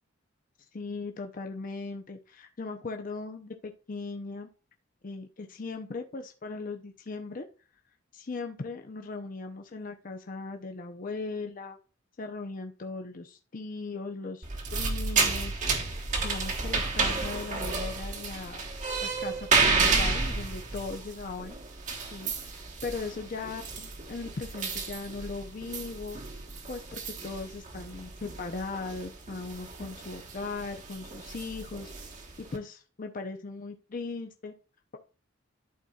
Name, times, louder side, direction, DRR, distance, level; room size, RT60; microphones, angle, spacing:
voice 1, 0.7-4.5 5.0-7.5 8.1-11.8 12.2-18.6 19.0-21.6 22.1-22.3 22.8-26.2 26.7-32.1 32.4-34.5, left 3 dB, 45° left, 4 dB, 0.6 m, -38 dB
sound 1, 14.4-32.6, right 4 dB, 40° right, 1.1 m, -31 dB
12.0 x 4.2 x 2.3 m, 0.33 s
head